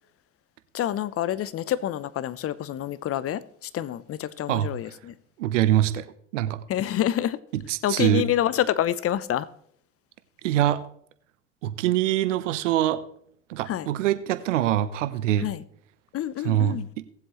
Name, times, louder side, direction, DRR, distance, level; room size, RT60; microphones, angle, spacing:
voice 1, 0.7-5.1 6.7-7.4 7.8-9.5 13.7-13.9 15.4-15.6 16.1-16.9, left 11 dB, 40° left, 0.7 m, -27 dB
voice 2, 5.4-6.1 6.3-6.6 7.5-8.3 10.4-10.8 11.6-13.0 13.5-15.5 16.4-17.1, right 12 dB, 85° right, 0.8 m, -24 dB
18.5 x 7.7 x 3.1 m
hypercardioid pair, 70°, 36 cm